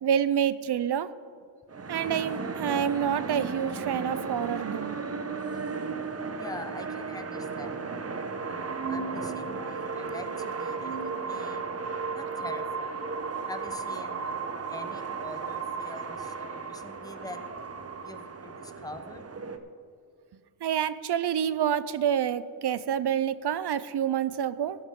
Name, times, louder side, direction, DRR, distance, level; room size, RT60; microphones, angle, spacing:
voice 1, 0.0-1.1 1.9-5.0 5.6-5.7 20.6-24.8, right 9 dB, 60° right, 16 dB, 0.6 m, -28 dB
sound 1, 1.7-19.6, right 4 dB, 30° right, 0.9 m, -35 dB
voice 2, 6.4-8.0 8.4-11.7 12.1-13.0 13.5-17.4 18.0-19.3, left 2 dB, 10° left, 8 dB, 0.8 m, -44 dB
sound 2, 8.5-12.0, right 4 dB, 90° right, 1.1 m, -40 dB
13.5 x 12.5 x 3.8 m, 2.2 s
wide cardioid pair, 95°, 46 cm